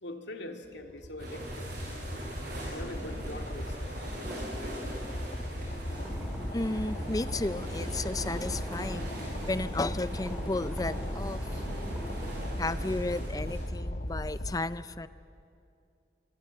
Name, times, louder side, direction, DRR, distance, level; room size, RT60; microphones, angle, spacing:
voice 1, 0.0-1.7 2.6-5.1, left 1 dB, 85° left, 4 dB, 2.3 m, -43 dB
sound 1, 0.8-14.5, left 1 dB, 55° left, 1.7 m, -37 dB
sound 2, 1.2-13.6, right 1 dB, 55° right, 7.6 m, -42 dB
sound 3, 4.0-12.4, equal, 5° right, 6.0 m, -43 dB
voice 2, 6.5-11.6 12.6-15.1, left 2 dB, 20° left, 15 dB, 0.5 m, -33 dB
25.5 x 25.0 x 7.7 m, 2.5 s
head